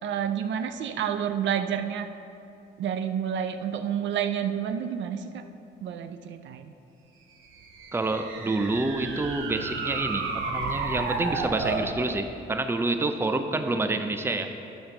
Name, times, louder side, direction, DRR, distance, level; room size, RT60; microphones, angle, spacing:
voice 1, 0.0-2.1 2.8-5.5 5.8-6.7, right 8 dB, 70° right, 9 dB, 0.5 m, -29 dB
sound 1, 7.5-11.9, right 4 dB, 85° right, 0.9 m, -32 dB
voice 2, 7.9-14.5, right 2 dB, 10° right, 7 dB, 0.6 m, -28 dB
8.7 x 5.4 x 6.6 m, 2.7 s
cardioid pair, 90°, 20 cm